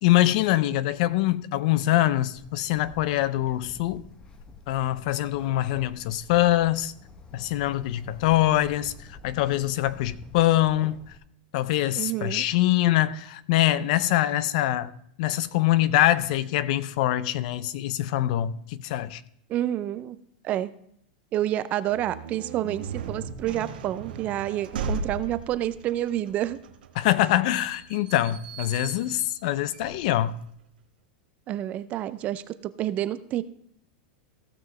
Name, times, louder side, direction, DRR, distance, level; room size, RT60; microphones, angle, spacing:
voice 1, 0.0-4.1 4.7-6.9 7.3-8.9 9.2-11.0 11.5-14.9 15.2-19.2 27.0-30.4, left 14 dB, 55° left, 0.5 m, -24 dB
Bird, 2.4-11.2, left 4 dB, 20° left, 0.8 m, -48 dB
voice 2, 12.0-12.5 19.5-20.2 20.4-20.7 21.3-26.6 31.5-33.4, right 13 dB, 30° right, 0.4 m, -29 dB
sound 1, 21.8-30.5, right 4 dB, 90° right, 1.2 m, -37 dB
15.5 x 6.2 x 3.2 m
supercardioid pair, 150°, 5 cm